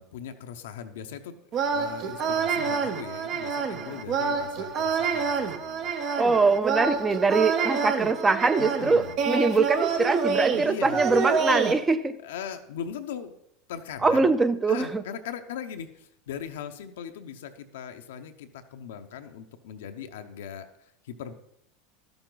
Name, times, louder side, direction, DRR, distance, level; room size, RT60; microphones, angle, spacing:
voice 1, 0.0-1.4 1.6-6.2 7.3-7.5 8.6-9.2 10.5-11.2 12.2-13.3 13.7-14.3 14.7-21.3, left 8 dB, 80° left, 7 dB, 0.8 m, -39 dB
sound 1, 1.5-11.7, right 5 dB, 45° right, 0.9 m, -27 dB
voice 2, 6.2-12.2 14.0-15.0, right 4 dB, 15° right, 11 dB, 0.6 m, -23 dB
12.0 x 7.0 x 3.9 m, 0.77 s
hypercardioid pair, 105°, 0 cm